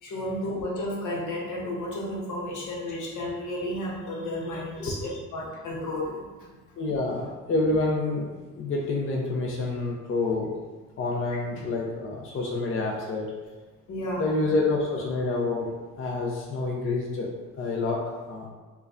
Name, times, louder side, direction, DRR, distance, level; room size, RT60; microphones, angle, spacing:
voice 1, 0.0-6.5 13.9-14.3, left 1 dB, 80° left, -3 dB, 0.9 m, -32 dB
voice 2, 6.8-10.5 11.0-13.3 14.1-15.7 16.0-18.0 18.3-18.5, left 3 dB, 45° left, -1 dB, 0.5 m, -28 dB
4.4 x 2.2 x 2.5 m, 1.3 s
cardioid pair, 90°, 30 cm